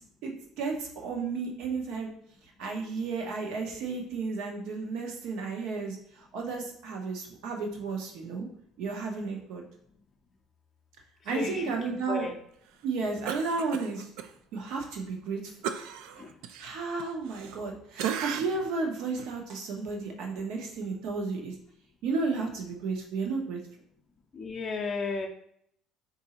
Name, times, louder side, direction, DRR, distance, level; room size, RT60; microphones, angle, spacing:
voice 1, 0.2-2.1 2.6-8.5 8.8-9.6 11.2-12.3 12.8-14.1 14.5-15.5 16.6-21.5 22.0-23.6, right 4 dB, 70° right, 2 dB, 0.9 m, -33 dB
voice 2, 11.3-11.6 12.1-12.3 16.2-16.3 24.3-25.3, left 4 dB, 20° left, 0 dB, 0.5 m, -33 dB
Cough, 13.3-14.3 14.7-14.8 15.6-17.7 18.0-18.7 19.2-19.3, right 8 dB, 90° right, 0.3 m, -35 dB
3.9 x 2.6 x 4.3 m, 0.69 s
cardioid pair, 165°, 0 cm